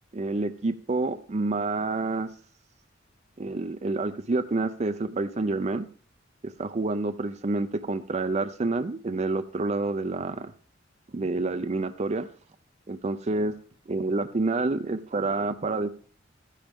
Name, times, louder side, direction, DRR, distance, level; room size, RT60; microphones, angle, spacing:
voice 1, 0.1-2.3 3.4-5.9 6.6-10.5 11.1-12.3 12.9-13.5 13.9-15.9, right 3 dB, 35° right, 9 dB, 0.5 m, -28 dB
13.0 x 10.0 x 3.6 m, 0.43 s
head